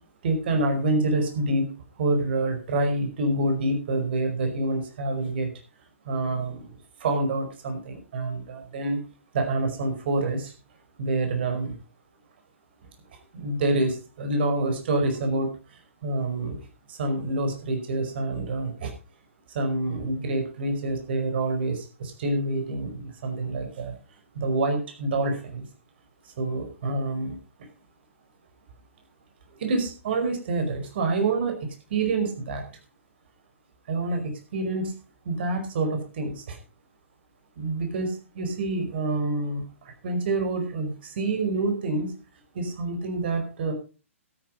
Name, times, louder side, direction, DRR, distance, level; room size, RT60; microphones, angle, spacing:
voice 1, 0.2-1.7 2.0-5.5 6.0-6.7 7.0-9.0 9.3-10.5 11.0-11.7 13.3-15.5 16.0-16.6 16.9-18.9 19.5-24.0 24.3-25.6 26.4-27.4 29.6-31.6 31.9-32.6 33.9-34.9 35.2-36.6 37.6-39.6 40.0-42.1 42.5-43.7, right 2 dB, 50° right, 5 dB, 4.8 m, -27 dB
13.0 x 10.0 x 5.1 m, 0.35 s
figure-of-eight pair, 125°, 7 cm